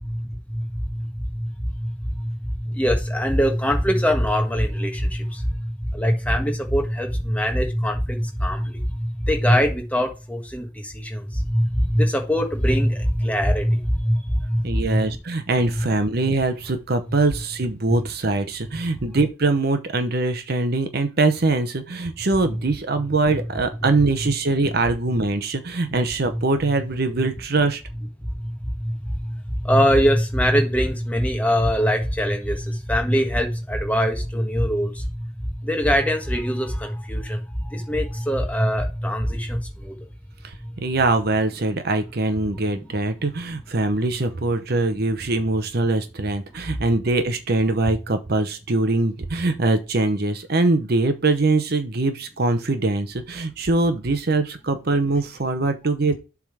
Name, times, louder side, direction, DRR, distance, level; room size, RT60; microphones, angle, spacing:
voice 1, 0.0-15.0 15.8-15.9 28.4-35.3 35.6-39.9, equal, 5° left, 1.4 m, -23 dB
voice 2, 14.6-27.8 40.4-56.2, right 2 dB, 50° right, 0.8 m, -22 dB
7.5 x 3.6 x 4.8 m
head